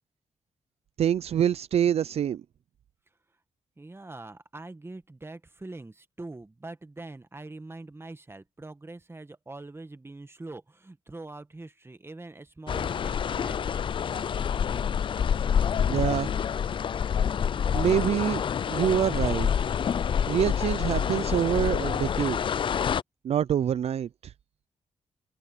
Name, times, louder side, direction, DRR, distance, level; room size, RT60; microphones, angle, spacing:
voice 1, 1.0-2.4 15.9-16.3 17.7-18.4 18.7-19.7 20.3-22.4 23.2-24.3, right 9 dB, 65° right, 0.5 m, -26 dB
voice 2, 3.8-13.9, right 2 dB, 20° right, 1.8 m, -43 dB
sound 1, 12.7-23.0, left 8 dB, 45° left, 0.4 m, -27 dB
cardioid pair, 65°, 11 cm